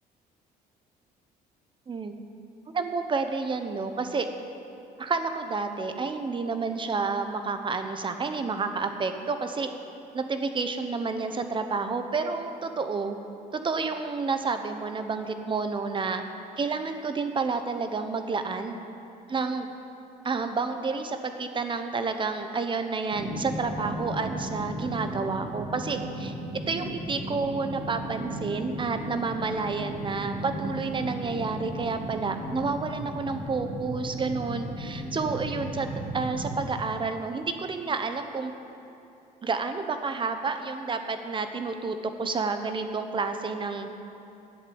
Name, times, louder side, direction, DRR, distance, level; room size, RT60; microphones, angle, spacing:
voice 1, 2.7-4.3 5.0-9.7 10.1-13.2 13.5-16.2 16.6-18.8 19.3-19.7 20.2-26.3 26.7-35.9 36.1-38.5 39.4-43.9, right 4 dB, 30° right, 7 dB, 1.0 m, -30 dB
sound 1, 23.1-36.6, right 1 dB, 55° right, 2.8 m, -35 dB
11.0 x 7.5 x 8.9 m, 2.7 s
cardioid pair, 110°, 17 cm